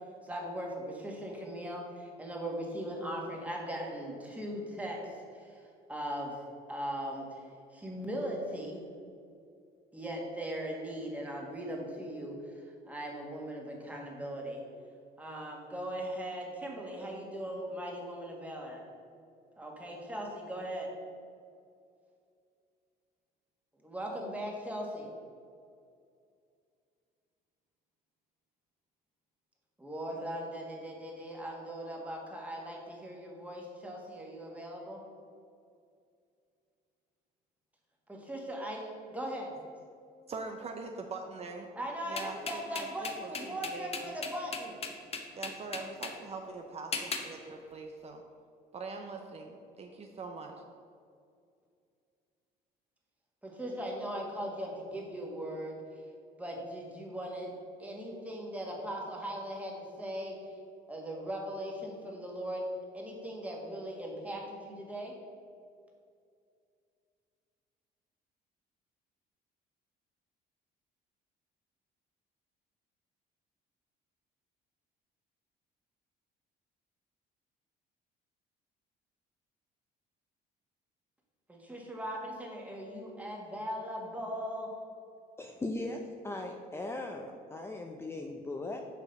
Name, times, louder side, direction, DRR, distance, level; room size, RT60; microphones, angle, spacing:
voice 1, 0.2-6.4 6.7-7.4 7.7-8.8 9.9-14.6 15.2-18.8 19.6-20.9 23.8-25.1 29.8-35.0 38.1-39.6 41.7-44.7 53.4-56.0 56.4-57.5 57.8-60.3 60.9-62.7 62.9-65.1 81.5-84.7, equal, 10° right, -1 dB, 1.6 m, -39 dB
voice 2, 40.3-41.7 42.1-44.2 45.3-48.2 48.7-50.5, right 4 dB, 40° right, 3 dB, 0.6 m, -43 dB
sound 1, 42.2-46.2 46.9-47.3, left 5 dB, 35° left, 0.9 m, -37 dB
voice 3, 85.4-88.8, left 2 dB, 15° left, 2 dB, 0.5 m, -38 dB
6.6 x 4.9 x 5.3 m, 2.4 s
cardioid pair, 110°, 17 cm